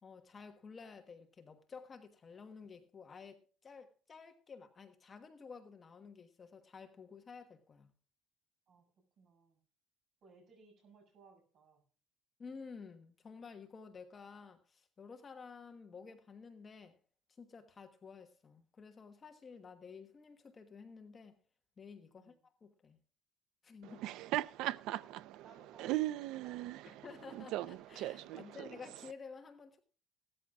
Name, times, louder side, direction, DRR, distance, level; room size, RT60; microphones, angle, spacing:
voice 1, 0.0-7.9 12.4-17.0 17.4-21.4 21.8-23.0 23.6-24.1 26.8-29.8, left 5 dB, 25° left, 1.2 m, -52 dB
voice 2, 8.7-9.6 10.2-11.8 22.2-22.4 24.0-24.4 25.4-26.9 28.2-28.6, right 4 dB, 45° right, 7.0 m, -63 dB
Laughter, 23.8-29.1, right 15 dB, 70° right, 0.5 m, -39 dB
17.0 x 13.5 x 2.4 m
cardioid pair, 170°, 0 cm